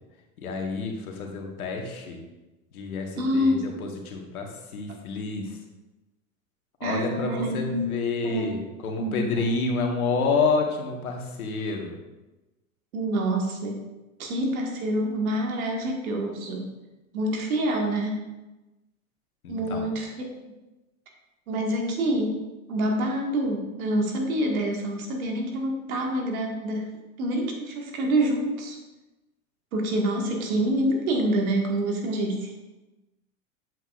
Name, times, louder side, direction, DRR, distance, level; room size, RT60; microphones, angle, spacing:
voice 1, 0.4-2.2 2.7-5.6 6.8-11.9 19.4-19.9, left 4 dB, 90° left, 2 dB, 1.5 m, -29 dB
voice 2, 3.2-3.7 6.8-8.0 8.2-8.7 9.0-9.3 12.9-13.8 14.2-16.7 17.1-18.2 19.5-20.3 21.5-22.3 22.7-26.8 27.2-28.8 29.7-32.6, right 1 dB, 80° right, 1 dB, 1.8 m, -26 dB
7.8 x 7.7 x 2.5 m, 1.1 s
hypercardioid pair, 100°, 42 cm